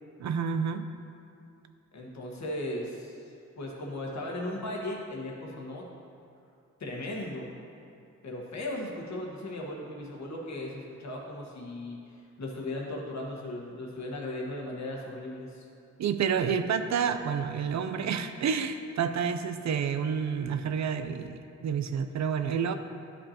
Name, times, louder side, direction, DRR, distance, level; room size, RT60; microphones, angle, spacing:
voice 1, 0.2-0.9 16.0-22.7, right 7 dB, 65° right, 9 dB, 0.5 m, -29 dB
voice 2, 1.9-3.2 3.6-5.8 6.8-7.5 8.2-12.0 12.4-15.7, left 1 dB, 65° left, -2 dB, 1.4 m, -37 dB
12.0 x 5.4 x 2.9 m, 2.5 s
cardioid pair, 95°, 30 cm